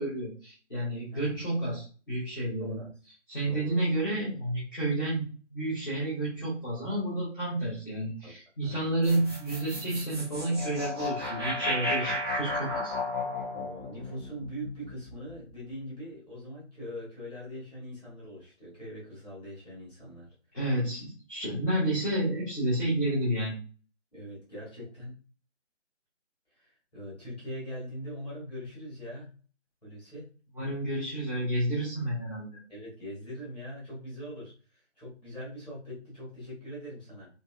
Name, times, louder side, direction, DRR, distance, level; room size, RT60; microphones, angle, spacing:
voice 1, 0.0-2.8 3.3-12.9 20.5-23.6 30.6-32.6, right 1 dB, 15° left, -8 dB, 0.8 m, -30 dB
voice 2, 1.1-1.4 2.6-2.9 3.5-3.8 8.2-8.3 8.6-9.0 13.5-20.3 24.1-25.2 26.5-29.3 29.8-30.3 32.7-37.3, equal, 5° right, -7 dB, 1.1 m, -42 dB
sound 1, 9.0-15.3, left 1 dB, 20° right, 0.8 m, -33 dB
3.0 x 2.7 x 2.4 m, 0.38 s
figure-of-eight pair, 160°, 36 cm